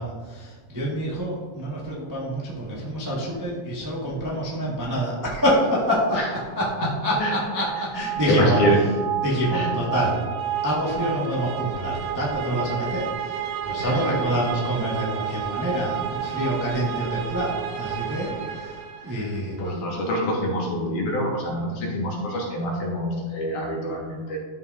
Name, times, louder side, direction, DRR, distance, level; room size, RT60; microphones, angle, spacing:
voice 1, 0.0-8.6 9.2-10.2 10.6-19.6, equal, 25° right, -6 dB, 0.4 m, -27 dB
sound 1, 6.6-19.4, right 9 dB, 80° right, 2.1 m, -31 dB
voice 2, 7.9-8.8 9.5-9.7 13.8-14.4 19.0-19.3 19.6-24.4, equal, 85° left, -2 dB, 3.1 m, -26 dB
13.0 x 5.8 x 2.6 m, 1.5 s
omnidirectional pair, 3.5 m